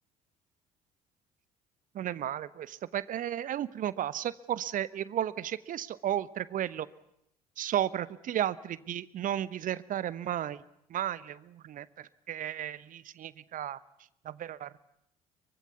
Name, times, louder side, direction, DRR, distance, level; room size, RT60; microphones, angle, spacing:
voice 1, 1.9-6.9 7.6-10.6 10.9-13.8 14.2-14.8, right 11 dB, 45° right, 18 dB, 1.0 m, -34 dB
23.5 x 20.5 x 9.5 m, 0.77 s
figure-of-eight pair, 50°, 20 cm